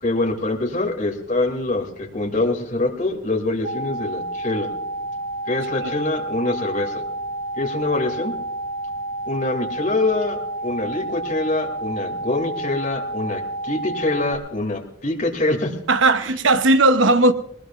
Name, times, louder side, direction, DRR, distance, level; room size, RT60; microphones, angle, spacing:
voice 1, 0.0-4.7 5.5-6.9 7.6-8.3 9.3-15.7, left 2 dB, 45° left, 3 dB, 2.6 m, -24 dB
sound 1, 3.6-14.3, right 1 dB, 40° right, 3.0 m, -30 dB
voice 2, 15.9-17.3, right 2 dB, 90° right, 9 dB, 0.9 m, -16 dB
21.0 x 19.5 x 2.5 m, 0.73 s
head